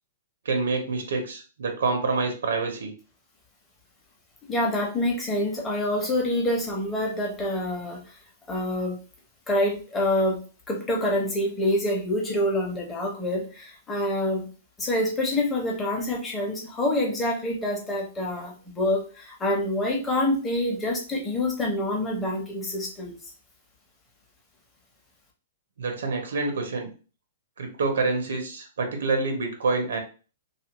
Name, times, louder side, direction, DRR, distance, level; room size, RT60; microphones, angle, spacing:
voice 1, 0.4-2.9 25.8-26.9 27.6-30.0, right 3 dB, 90° right, 4 dB, 0.7 m, -27 dB
voice 2, 4.4-8.0 8.5-9.0 9.5-10.4 10.7-14.5 14.8-23.2, left 1 dB, 10° left, -1 dB, 0.7 m, -26 dB
2.7 x 2.4 x 2.9 m, 0.37 s
hypercardioid pair, 160°, 0 cm